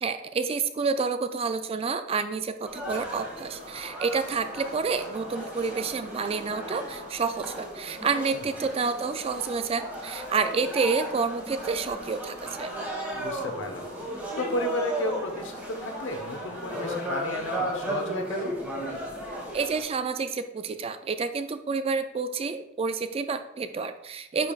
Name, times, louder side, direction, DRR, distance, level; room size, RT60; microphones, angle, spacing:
voice 1, 0.0-12.7 19.5-24.5, right 5 dB, 30° right, 10 dB, 0.3 m, -29 dB
sound 1, 2.6-19.8, right 1 dB, 5° right, 1.6 m, -36 dB
sound 2, 3.5-18.4, right 1 dB, 45° right, 1.4 m, -47 dB
voice 2, 13.1-18.5, left 1 dB, 65° left, 4 dB, 0.9 m, -33 dB
9.8 x 5.4 x 2.4 m, 0.88 s
head